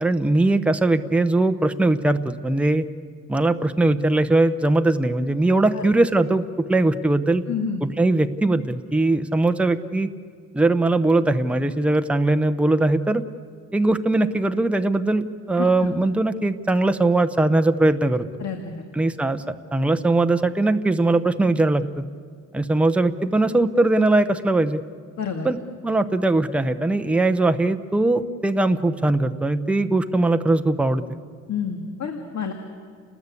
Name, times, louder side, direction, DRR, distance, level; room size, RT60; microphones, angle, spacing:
voice 1, 0.0-2.9 3.3-6.4 6.7-7.4 7.8-10.1 10.5-13.2 13.7-18.2 19.0-19.4 19.7-22.1 22.5-24.8 25.4-25.6 25.8-31.0, right 2 dB, 5° right, 8 dB, 0.7 m, -20 dB
voice 2, 7.5-7.8 15.6-15.9 18.4-18.8 25.2-25.5 31.5-32.5, left 6 dB, 60° left, 4 dB, 2.1 m, -29 dB
29.5 x 20.5 x 8.4 m, 2.1 s
wide cardioid pair, 155°, 32 cm